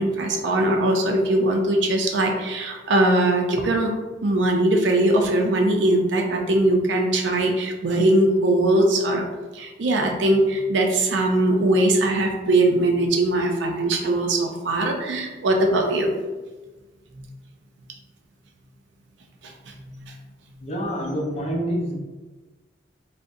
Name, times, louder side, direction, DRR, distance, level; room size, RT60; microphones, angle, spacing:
voice 1, 0.0-3.9 4.2-9.3 9.5-16.2 17.2-17.3 19.4-19.5 20.0-20.1, right 1 dB, 70° right, 2 dB, 0.5 m, -21 dB
voice 2, 20.6-22.0, equal, 35° left, -1 dB, 0.5 m, -27 dB
3.7 x 2.1 x 2.6 m, 1.2 s
head